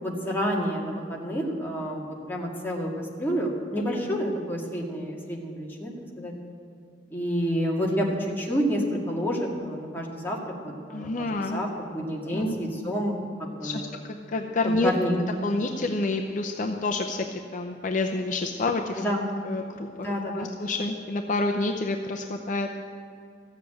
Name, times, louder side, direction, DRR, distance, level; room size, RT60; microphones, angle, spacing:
voice 1, 0.0-6.3 7.1-10.4 10.6-13.9 14.6-15.2 19.0-19.3 20.0-20.5, equal, 10° left, -2 dB, 2.0 m, -29 dB
voice 2, 10.9-11.6 12.3-12.5 13.6-13.9 14.3-14.9 15.4-17.2 17.5-19.0 19.5-22.7, left 2 dB, 45° left, 3 dB, 0.6 m, -28 dB
14.5 x 7.5 x 8.8 m, 2.4 s
head